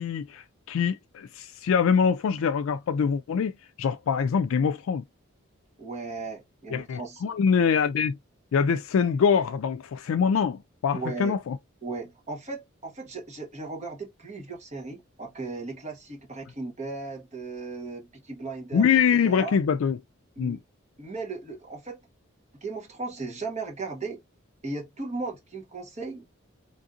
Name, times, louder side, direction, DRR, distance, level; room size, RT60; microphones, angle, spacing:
voice 1, 0.0-3.5 3.8-5.0 6.7-8.2 8.5-11.6 18.7-20.0 20.4-20.6, left 6 dB, 75° left, 0.3 m, -24 dB
voice 2, 5.8-7.2 10.9-11.4 11.8-19.6 20.4-20.6 21.0-22.0 22.6-24.2 24.6-26.2, right 3 dB, 30° right, 1.0 m, -36 dB
3.5 x 2.5 x 2.5 m
head